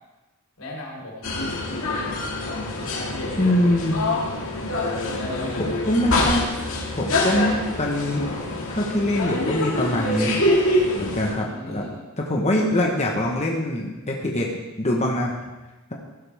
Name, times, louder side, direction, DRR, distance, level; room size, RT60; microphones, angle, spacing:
voice 1, 0.6-1.6 2.6-3.6 5.1-5.6 11.3-12.1, left 1 dB, 85° left, -3 dB, 4.1 m, -37 dB
sound 1, 1.2-11.3, left 1 dB, 65° left, 2.2 m, -25 dB
voice 2, 3.3-4.3 5.1-5.2 5.6-6.5 6.9-8.2 8.7-10.4 10.9-11.8 12.2-15.4, left 1 dB, 30° left, -1 dB, 1.3 m, -24 dB
15.5 x 12.0 x 3.6 m, 1.1 s
head